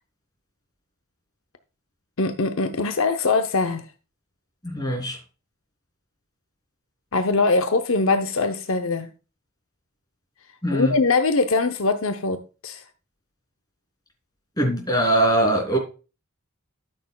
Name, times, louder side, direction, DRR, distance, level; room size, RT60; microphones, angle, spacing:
voice 1, 2.2-3.8 7.1-9.1 10.7-12.8, left 3 dB, 70° left, 0.8 m, -22 dB
voice 2, 4.6-5.2 10.6-10.9 14.6-15.8, right 1 dB, 20° left, 3.1 m, -21 dB
13.0 x 6.7 x 2.3 m
head